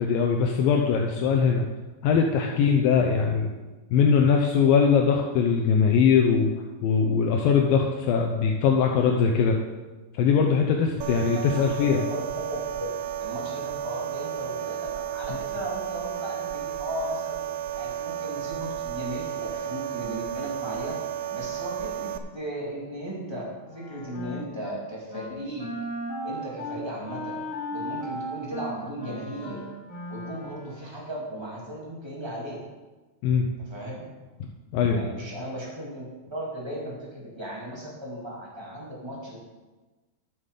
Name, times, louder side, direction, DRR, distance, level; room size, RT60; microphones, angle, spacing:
voice 1, 0.0-1.6 2.0-3.5 3.9-6.5 6.8-9.6 10.2-12.0 33.2-33.5 34.7-35.1, left 6 dB, 80° left, 2 dB, 2.1 m, -21 dB
sound 1, 11.0-22.2, right 10 dB, 90° right, 2.9 m, -33 dB
voice 2, 11.3-12.2 12.5-17.4 17.7-25.7 26.2-27.4 27.7-29.6 30.1-32.6 33.6-34.1 34.9-39.4, equal, 10° right, -4 dB, 1.3 m, -36 dB
Wind instrument woodwind instrument, 23.6-24.8 25.1-25.3 25.6-30.9, equal, 20° left, 2.8 m, -36 dB
11.5 x 7.3 x 5.3 m, 1.2 s
omnidirectional pair, 5.0 m